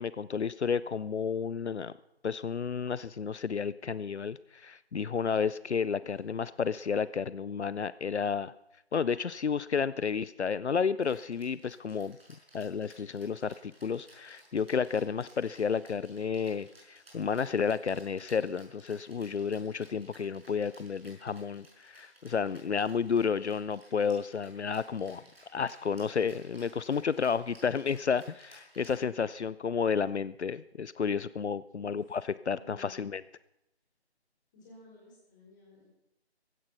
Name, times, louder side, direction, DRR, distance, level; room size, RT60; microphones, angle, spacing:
voice 1, 0.0-1.9 2.2-8.5 8.9-12.2 12.5-25.2 25.5-33.2, left 6 dB, 80° left, 18 dB, 0.6 m, -31 dB
Rattle (instrument), 11.0-29.5, right 1 dB, 60° right, 6.0 m, -59 dB
voice 2, 31.8-32.2 32.4-33.0 34.5-35.8, left 2 dB, 15° left, -4 dB, 5.1 m, -55 dB
16.0 x 12.5 x 5.8 m, 0.86 s
figure-of-eight pair, 160°, 33 cm